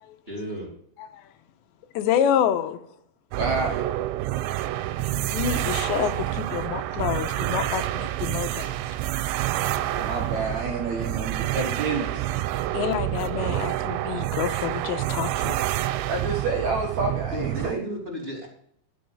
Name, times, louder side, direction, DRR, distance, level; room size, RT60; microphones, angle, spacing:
voice 1, 0.3-0.7 17.3-18.5, equal, 15° right, 2.7 m, -33 dB
voice 2, 1.9-2.8 5.0-8.8 12.7-15.6, left 9 dB, 85° left, 3.1 m, -28 dB
voice 3, 3.3-3.8 9.9-12.3 16.1-17.8, right 3 dB, 55° right, 2.3 m, -29 dB
sound 1, 3.3-17.7, right 14 dB, 90° right, 3.0 m, -28 dB
12.5 x 6.6 x 6.7 m
omnidirectional pair, 5.1 m